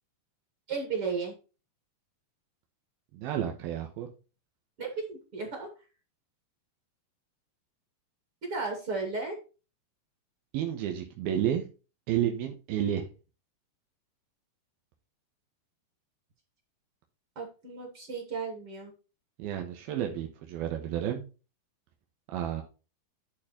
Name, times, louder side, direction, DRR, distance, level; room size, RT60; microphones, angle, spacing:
voice 1, 0.7-1.3 4.8-5.7 8.4-9.4 17.4-18.9, right 4 dB, 40° right, 1 dB, 2.8 m, -34 dB
voice 2, 3.1-4.1 10.5-11.7 12.1-13.1 19.4-21.2 22.3-22.6, right 10 dB, 85° right, 3 dB, 3.0 m, -31 dB
11.5 x 4.4 x 4.3 m, 0.32 s
omnidirectional pair, 4.2 m